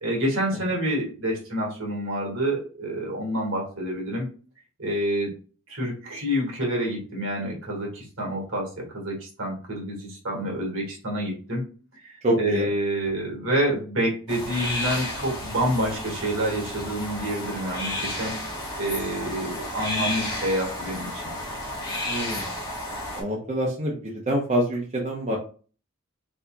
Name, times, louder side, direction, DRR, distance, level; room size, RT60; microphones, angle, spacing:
voice 1, 0.0-4.3 4.8-5.3 5.7-11.6 12.0-18.4 18.8-21.1, right 1 dB, 65° right, -1 dB, 1.9 m, -28 dB
voice 2, 12.2-12.6 22.0-22.5 23.1-25.4, right 1 dB, 30° right, -2 dB, 0.8 m, -26 dB
sound 1, 14.3-23.2, left 1 dB, 20° left, 1.8 m, -32 dB
4.2 x 4.1 x 2.3 m, 0.38 s
head